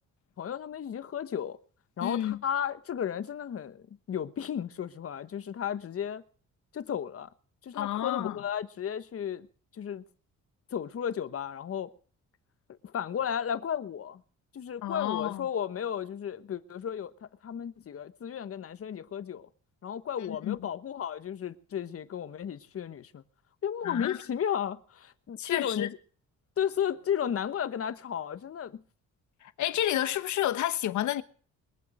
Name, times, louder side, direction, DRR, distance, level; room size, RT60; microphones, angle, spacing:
voice 1, 0.4-1.6 2.0-6.2 6.7-7.3 7.6-9.5 9.7-10.0 10.7-11.9 12.8-14.2 14.5-19.5 19.8-23.2 23.6-26.0 26.6-28.8, left 8 dB, 50° left, 1.2 m, -34 dB
voice 2, 2.0-2.4 7.7-8.4 14.8-15.4 20.3-20.6 23.8-24.2 25.4-25.9 29.4-31.2, left 12 dB, 70° left, 1.1 m, -30 dB
22.0 x 7.7 x 6.4 m
cardioid pair, 90°, 30 cm